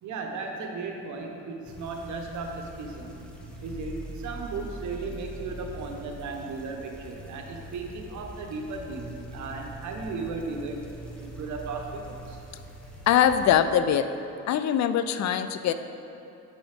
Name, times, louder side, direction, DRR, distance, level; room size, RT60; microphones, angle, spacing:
voice 1, 0.0-3.2 3.6-10.8 11.2-12.4, right 3 dB, 70° right, 2 dB, 1.0 m, -36 dB
sound 1, 1.6-13.6, right 1 dB, 5° left, 1.1 m, -43 dB
voice 2, 13.1-14.1 14.5-15.7, left 9 dB, 65° left, 11 dB, 0.4 m, -22 dB
8.3 x 6.1 x 3.5 m, 2.9 s
cardioid pair, 90°, 30 cm